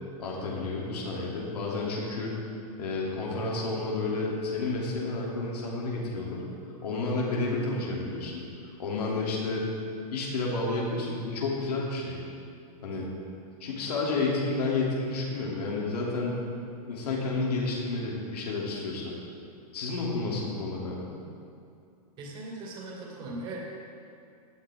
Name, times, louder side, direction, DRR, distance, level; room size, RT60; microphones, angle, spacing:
voice 1, 0.2-2.3 2.8-6.4 6.8-8.4 8.8-9.7 10.1-12.2 12.8-13.1 13.6-16.4 16.8-19.1 19.7-21.2, left 3 dB, 85° left, -4 dB, 3.0 m, -30 dB
voice 2, 22.2-23.7, right 2 dB, 25° right, -3 dB, 2.3 m, -39 dB
17.0 x 9.8 x 3.7 m, 2.5 s
supercardioid pair, 165°, 20 cm